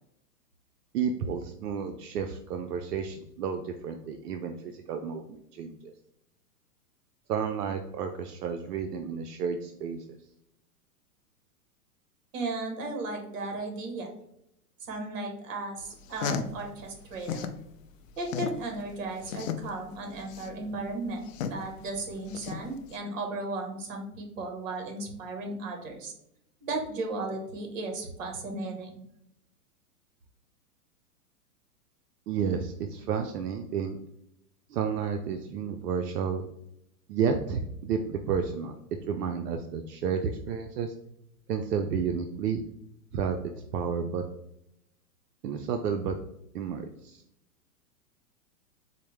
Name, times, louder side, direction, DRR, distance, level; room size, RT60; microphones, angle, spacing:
voice 1, 0.9-5.9 7.3-10.2 32.3-34.0 34.7-36.4 37.1-38.8 39.1-40.9 41.5-42.6 43.1-44.3 45.4-46.2 46.5-47.2, right 6 dB, 80° right, 5 dB, 0.5 m, -31 dB
voice 2, 12.3-14.1 14.9-17.5 18.2-26.1 26.6-29.0, right 2 dB, 55° right, 3 dB, 1.2 m, -35 dB
sound 1, 15.9-17.6 18.0-23.0, left 6 dB, 60° left, 0.5 m, -35 dB
4.3 x 2.1 x 3.1 m, 0.79 s
hypercardioid pair, 125°, 46 cm